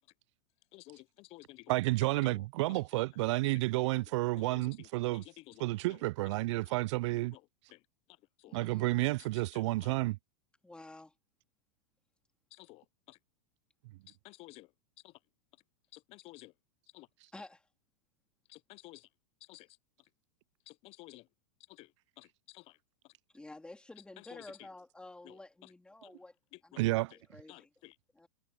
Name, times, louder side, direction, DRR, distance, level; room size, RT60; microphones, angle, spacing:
voice 1, 0.7-2.8 3.9-4.1 4.4-5.6 5.9-6.0 6.7-6.8 7.3-7.4 7.7-7.8 8.4-8.6 9.2-9.9 12.5-13.2 14.1-14.7 15.0-15.2 15.9-16.5 16.9-17.1 18.5-19.1 19.4-19.7 20.7-21.3 21.7-22.8 23.0-23.1 24.2-24.7 25.2-25.7 26.5-27.2 27.5-28.0, left 20 dB, 35° left, 0.5 m, -54 dB
voice 2, 1.7-5.2 5.6-7.4 8.5-10.2 26.8-27.1, right 20 dB, 60° right, 0.4 m, -31 dB
voice 3, 8.5-9.0 10.6-11.1 17.3-17.7 23.3-26.4 26.6-27.7 28.1-28.3, left 2 dB, 5° left, 3.5 m, -51 dB
hypercardioid pair, 130°, 17 cm